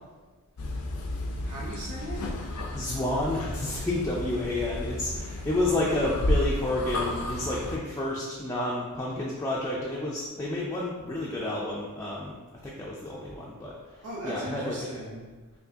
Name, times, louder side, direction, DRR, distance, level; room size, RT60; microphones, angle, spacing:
sound 1, 0.6-7.8, left 1 dB, 90° left, 0.5 m, -32 dB
voice 1, 1.4-2.4 14.0-15.3, right 1 dB, 70° right, -8 dB, 0.9 m, -38 dB
voice 2, 2.7-14.8, left 2 dB, 15° left, -5 dB, 0.4 m, -30 dB
4.5 x 2.7 x 2.7 m, 1.3 s
head